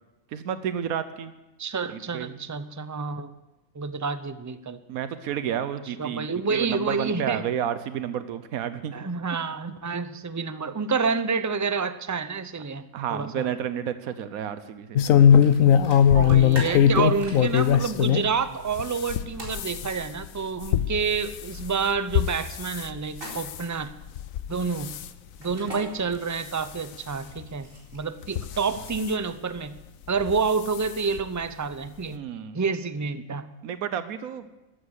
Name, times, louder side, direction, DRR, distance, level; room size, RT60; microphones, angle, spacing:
voice 1, 0.3-1.3 1.9-2.4 4.9-8.9 9.7-9.8 12.9-15.3 32.1-32.6 33.6-34.6, right 9 dB, 90° right, 12 dB, 1.3 m, -31 dB
voice 2, 1.6-3.3 3.7-4.8 6.0-7.4 8.9-13.5 16.1-23.9 24.5-25.0 25.4-27.7 27.9-29.8 30.1-32.2 32.5-33.5, right 5 dB, 30° right, 12 dB, 0.3 m, -28 dB
sound 1, 15.0-18.3 18.7-22.9 23.2-23.6 24.2-24.5 24.8-25.1 25.7-25.8 26.1-26.2 27.4-27.5 28.2-29.1 30.2-30.4 30.7-30.8 31.2-31.3, left 9 dB, 75° left, 1.2 m, -21 dB
sound 2, 15.4-15.5 15.8-17.6 19.4-19.6 23.1-23.7 25.4-25.8 27.2-28.1, right 1 dB, 65° right, 4.6 m, -39 dB
13.0 x 13.0 x 8.1 m, 1.0 s
omnidirectional pair, 1.5 m